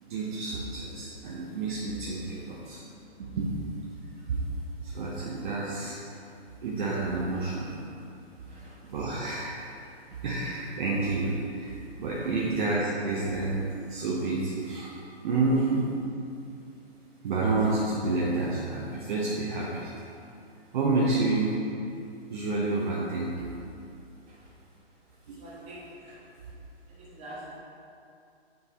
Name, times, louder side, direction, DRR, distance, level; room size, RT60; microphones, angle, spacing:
voice 1, 0.0-2.8 3.2-3.5 4.0-4.4 4.8-6.0 6.6-7.7 8.5-9.5 10.2-15.9 17.2-19.9 20.7-21.5 22.3-23.4 25.3-25.5, right 3 dB, 45° right, -4 dB, 0.8 m, -29 dB
voice 2, 8.4-8.8 24.3-24.4 25.4-26.2 26.9-27.6, right 1 dB, 20° right, -7 dB, 1.6 m, -45 dB
9.1 x 3.4 x 4.1 m, 2.6 s
figure-of-eight pair, 130°, 33 cm